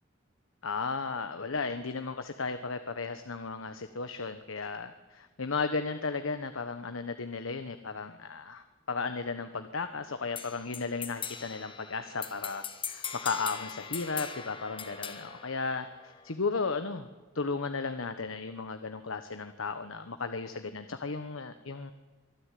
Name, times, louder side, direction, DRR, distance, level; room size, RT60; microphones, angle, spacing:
voice 1, 0.6-17.1 17.3-21.9, left 4 dB, 80° left, 9 dB, 1.1 m, -35 dB
sound 1, 10.4-16.3, left 7 dB, 25° left, 1.5 m, -41 dB
24.0 x 13.5 x 9.2 m, 1.3 s
head